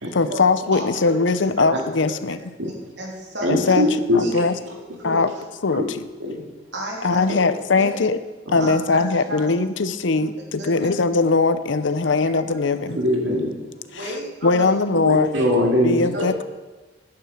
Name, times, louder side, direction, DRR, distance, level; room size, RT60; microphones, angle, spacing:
voice 1, 0.1-2.4 3.5-3.9 4.1-4.6 5.0-5.3 5.6-6.0 7.0-8.2 8.5-13.0 14.0-14.1 14.4-15.3 15.8-16.4, left 3 dB, 80° left, 12 dB, 0.7 m, -20 dB
voice 2, 0.7-1.1 1.6-1.8 2.6-3.8 4.1-4.3 4.7-5.2 6.7-7.4 7.7-7.9 8.6-9.6 10.2-10.3 10.6-10.9 12.7-12.8 13.8-14.8 16.1-16.4, equal, 70° right, -2 dB, 3.1 m, -33 dB
voice 3, 3.4-4.2 5.7-5.8 6.2-6.4 7.3-7.4 8.5-8.7 12.9-13.5 15.0-16.0, left 1 dB, 85° right, 1 dB, 2.4 m, -21 dB
11.0 x 9.8 x 6.3 m, 1.3 s
head